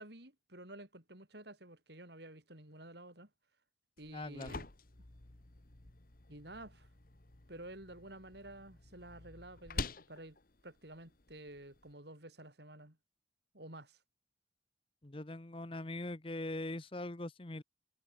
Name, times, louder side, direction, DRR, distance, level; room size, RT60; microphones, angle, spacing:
voice 1, 0.0-3.3 4.0-4.7 6.3-6.9 7.5-10.4 10.6-13.0 13.5-14.0, right 1 dB, 60° right, 5.4 m, -51 dB
sound 1, 4.0-11.9, left 3 dB, 50° left, 1.5 m, -48 dB
voice 2, 4.1-4.6 15.0-17.6, left 2 dB, 30° left, 1.0 m, -42 dB
head